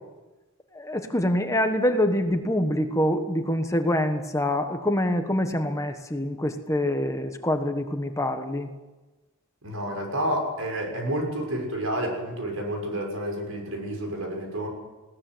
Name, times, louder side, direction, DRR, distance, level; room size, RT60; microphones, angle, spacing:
voice 1, 0.7-8.7, left 1 dB, 15° left, 6 dB, 1.2 m, -25 dB
voice 2, 9.6-14.7, right 1 dB, 80° right, 2 dB, 6.3 m, -29 dB
20.0 x 18.0 x 7.8 m, 1.1 s
head